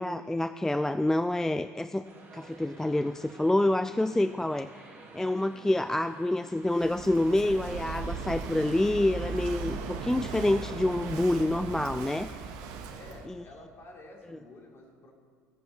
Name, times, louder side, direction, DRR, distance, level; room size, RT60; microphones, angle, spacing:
voice 1, 0.0-2.0 2.3-12.3 13.3-13.4, left 1 dB, 5° left, 11 dB, 0.3 m, -27 dB
sound 1, 2.0-13.1, right 3 dB, 30° right, 2.5 m, -51 dB
Walk footsteps / Wind / Waves surf, 6.6-13.3, right 5 dB, 60° right, 1.2 m, -38 dB
voice 2, 13.0-15.1, left 2 dB, 35° left, 0 dB, 3.1 m, -50 dB
23.0 x 7.8 x 4.3 m, 2.2 s
figure-of-eight pair, 65°, 7 cm